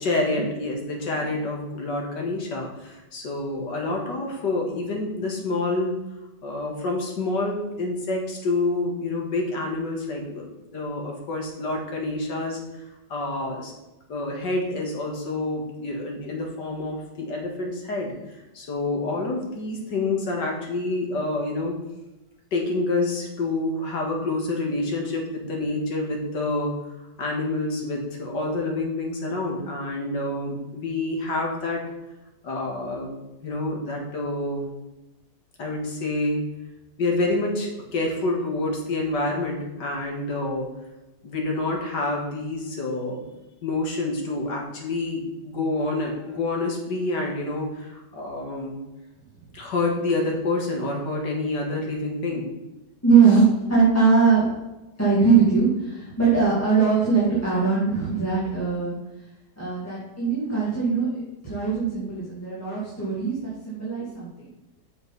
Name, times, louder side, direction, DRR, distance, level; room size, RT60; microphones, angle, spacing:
voice 1, 0.0-5.9 6.4-13.7 14.1-18.1 18.5-21.8 22.5-26.8 27.2-31.9 32.4-33.1 33.4-34.6 35.6-36.4 37.0-40.7 41.2-43.2 43.6-48.8 49.5-52.5, left 2 dB, 70° left, 0 dB, 2.4 m, -28 dB
voice 2, 53.0-54.5 55.0-59.0 59.6-64.5, right 5 dB, 10° left, -9 dB, 2.4 m, -21 dB
8.0 x 6.9 x 4.1 m, 1.0 s
omnidirectional pair, 1.9 m